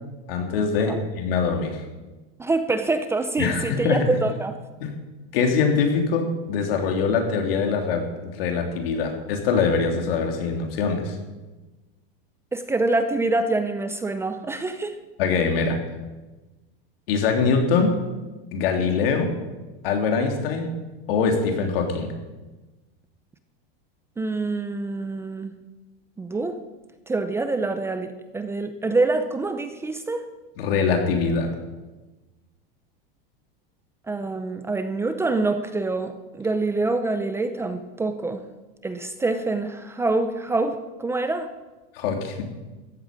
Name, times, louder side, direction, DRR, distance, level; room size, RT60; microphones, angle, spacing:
voice 1, 0.3-1.8 3.4-4.1 4.8-4.9 5.3-11.2 15.2-15.8 17.1-18.0 18.5-19.3 19.8-20.7 21.1-22.1 30.6-31.5 42.0-42.4, left 5 dB, 75° left, 3 dB, 3.5 m, -23 dB
voice 2, 2.4-4.6 12.5-15.0 24.2-25.5 26.2-26.6 27.1-30.2 34.1-38.4 38.8-41.5, right 3 dB, 10° right, 9 dB, 0.6 m, -26 dB
14.5 x 8.9 x 9.0 m, 1.2 s
supercardioid pair, 160°, 29 cm